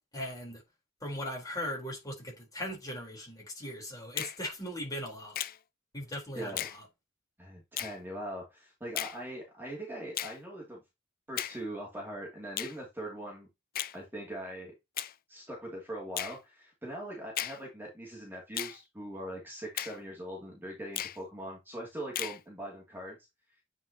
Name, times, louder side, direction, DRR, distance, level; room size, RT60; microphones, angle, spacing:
voice 1, 0.1-0.6 1.0-5.4 5.9-6.7, left 1 dB, 20° left, 4.2 m, -39 dB
Finger snapping, 4.2-4.4 5.3-5.6 6.6-6.8 7.8-8.0 9.0-9.2 10.2-10.4 11.4-11.6 12.6-12.8 13.7-14.0 15.0-15.1 16.2-16.4 17.4-17.6 18.6-18.8 19.8-20.0 21.0-21.2 22.2-22.4, left 12 dB, 45° left, 0.5 m, -35 dB
voice 2, 6.3-6.7 7.4-10.8 11.3-13.5 13.9-14.7 15.3-23.2, right 1 dB, 10° right, 2.7 m, -41 dB
9.4 x 5.0 x 2.9 m
head